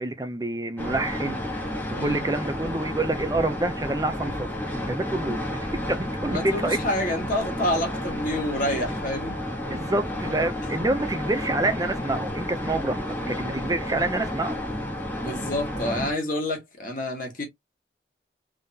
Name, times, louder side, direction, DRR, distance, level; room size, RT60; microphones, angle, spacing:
voice 1, 0.0-1.4 1.9-4.5 4.9-6.8 9.7-14.6, right 2 dB, 20° right, 0.6 m, -27 dB
sound 1, 0.8-16.1, left 1 dB, 10° left, 1.2 m, -31 dB
voice 2, 6.3-9.4 15.2-17.5, left 1 dB, 45° left, 1.5 m, -28 dB
3.7 x 3.4 x 2.8 m
head